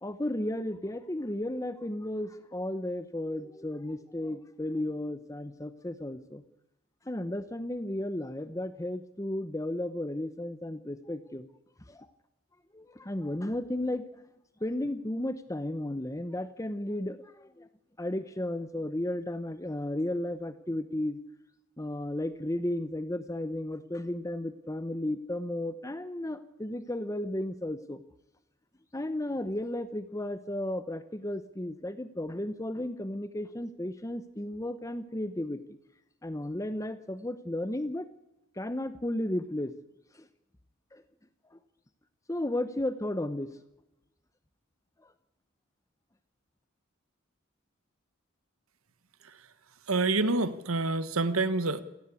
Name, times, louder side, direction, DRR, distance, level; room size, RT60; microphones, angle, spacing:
voice 1, 0.0-6.4 7.1-11.5 11.9-12.1 12.7-14.2 14.6-17.7 18.0-21.2 21.8-28.0 28.9-35.8 36.2-38.1 38.5-39.7 40.1-40.3 40.9-41.0 41.5-41.6 42.3-43.6 45.0-45.1, left 1 dB, 15° left, 12 dB, 0.9 m, -34 dB
voice 2, 49.9-51.8, right 3 dB, 85° right, 13 dB, 1.4 m, -27 dB
27.5 x 17.0 x 8.5 m, 0.95 s
head